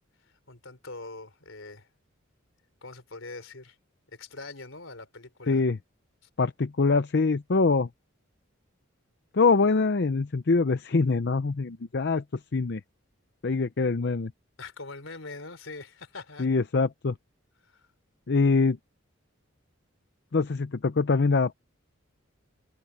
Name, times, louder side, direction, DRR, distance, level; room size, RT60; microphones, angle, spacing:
voice 1, 0.2-1.9 2.8-3.8 4.1-5.6 6.2-6.3 14.6-16.5 17.6-17.9, left 3 dB, 70° left, 3.6 m, -43 dB
voice 2, 5.5-5.8 6.4-7.9 9.3-12.2 12.5-12.8 13.4-14.3 16.4-17.1 18.3-18.8 20.3-21.5, left 4 dB, 55° left, 0.6 m, -24 dB
head